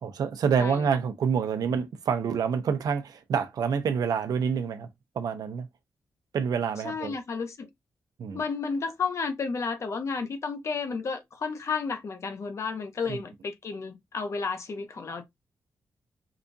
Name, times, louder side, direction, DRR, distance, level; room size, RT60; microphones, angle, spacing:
voice 1, 0.0-4.9 5.1-5.7 6.3-7.2 8.2-8.4 13.1-13.2, right 6 dB, 75° right, 0.7 m, -27 dB
voice 2, 6.8-7.7 8.3-15.2, left 5 dB, 45° left, 0.7 m, -32 dB
4.8 x 2.3 x 2.6 m
wide cardioid pair, 155°, 7 cm